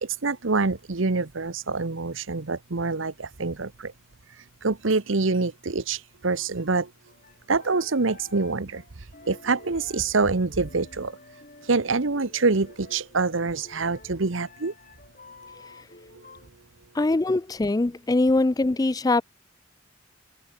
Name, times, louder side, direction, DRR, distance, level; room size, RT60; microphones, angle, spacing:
voice 1, 0.0-3.9 4.6-6.9 7.5-8.8 9.2-11.2 11.7-14.7, right 3 dB, 75° right, 1.1 m, -26 dB
sound 1, 7.1-16.5, left 3 dB, 40° left, 5.9 m, -51 dB
voice 2, 16.9-19.2, left 2 dB, 20° left, 0.4 m, -22 dB
head